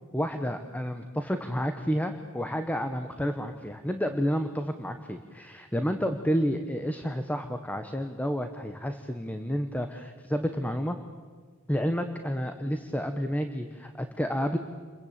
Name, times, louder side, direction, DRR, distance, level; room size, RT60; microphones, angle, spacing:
voice 1, 0.1-11.0 11.7-14.6, equal, 5° left, 7 dB, 1.2 m, -30 dB
29.5 x 22.5 x 8.8 m, 1.6 s
head